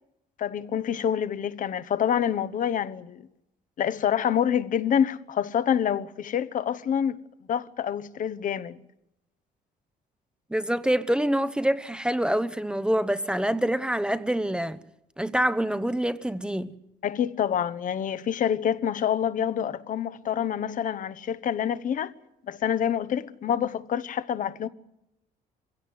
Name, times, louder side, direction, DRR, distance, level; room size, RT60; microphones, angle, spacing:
voice 1, 0.4-3.2 3.8-7.2 7.5-8.8 17.0-22.1 22.5-24.7, left 9 dB, 50° left, 1.0 m, -27 dB
voice 2, 10.5-14.8 15.2-16.7, right 1 dB, 5° right, 0.9 m, -26 dB
22.5 x 17.0 x 9.4 m
cardioid pair, 110°, 17 cm